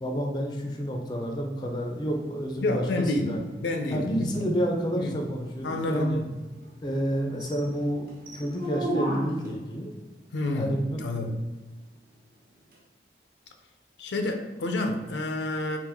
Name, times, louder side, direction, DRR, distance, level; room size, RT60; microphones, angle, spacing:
voice 1, 0.0-3.4 3.9-6.2 6.8-9.9 10.5-11.0, equal, 25° left, 1 dB, 0.4 m, -29 dB
sound 1, 1.8-9.7 12.7-12.8, right 1 dB, 55° right, 0.7 m, -38 dB
voice 2, 2.6-4.3 4.9-5.2 5.6-6.3 10.3-11.4 14.0-15.8, left 2 dB, 90° left, 5 dB, 0.5 m, -29 dB
3.6 x 2.5 x 3.4 m, 1.2 s
head